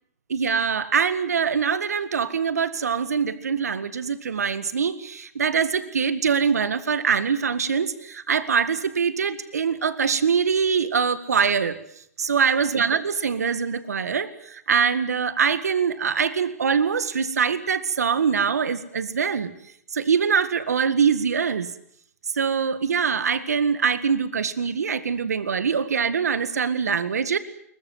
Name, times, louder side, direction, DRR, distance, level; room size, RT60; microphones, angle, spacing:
voice 1, 0.3-11.8 12.2-19.5 19.9-21.7 22.3-27.4, right 6 dB, 80° right, 14 dB, 1.8 m, -23 dB
22.0 x 21.0 x 9.7 m, 0.68 s
hypercardioid pair, 115°, 8 cm